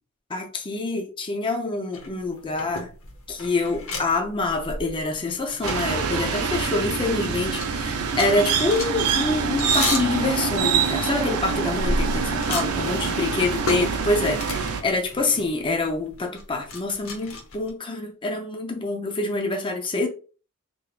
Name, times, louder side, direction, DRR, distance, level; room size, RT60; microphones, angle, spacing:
voice 1, 0.3-2.9 3.3-20.1, left 3 dB, 25° left, 0.5 m, -26 dB
sound 1, 1.9-7.0 7.2-17.7, left 2 dB, 65° left, 0.8 m, -33 dB
sound 2, 5.6-14.8, right 6 dB, 75° right, 0.6 m, -25 dB
3.5 x 3.3 x 2.4 m
head